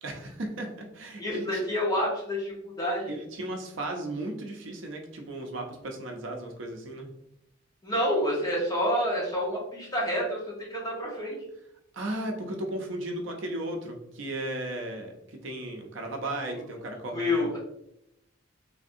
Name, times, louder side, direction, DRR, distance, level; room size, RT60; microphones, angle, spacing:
voice 1, 0.0-1.6 3.1-7.1 11.9-17.5, right 1 dB, 70° right, 2 dB, 0.5 m, -35 dB
voice 2, 1.2-3.1 7.8-10.4 10.7-11.4 16.5-16.6 17.1-17.6, left 1 dB, 20° left, -5 dB, 0.9 m, -28 dB
3.4 x 2.5 x 2.5 m, 0.79 s
head